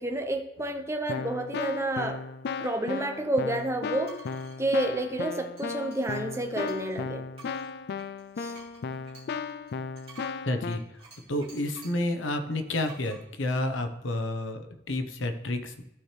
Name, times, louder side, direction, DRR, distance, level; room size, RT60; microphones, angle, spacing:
voice 1, 0.0-2.2 2.6-4.2 4.6-7.2 8.4-8.6, right 1 dB, 15° right, 4 dB, 0.7 m, -30 dB
Keyboard (musical), 0.6-0.7 1.1-10.8, left 5 dB, 55° left, 0.4 m, -36 dB
sound 1, 4.1-4.6 5.6-7.0 7.3-12.1 12.9-13.2, right 4 dB, 30° right, 2.2 m, -52 dB
voice 2, 10.5-15.8, left 1 dB, 80° left, 7 dB, 0.9 m, -30 dB
13.0 x 4.4 x 3.3 m, 0.88 s
head